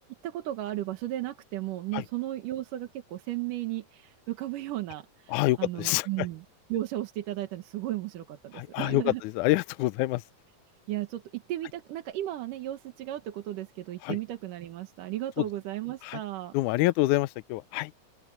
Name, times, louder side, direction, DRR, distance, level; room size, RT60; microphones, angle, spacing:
voice 1, 0.2-6.4 6.7-9.2 10.9-16.5, right 14 dB, 80° right, 2.9 m, -35 dB
voice 2, 5.3-6.3 8.5-10.2 14.0-14.2 15.4-15.5 16.0-16.2 16.5-17.9, left 18 dB, 80° left, 1.9 m, -27 dB
open air
omnidirectional pair, 3.8 m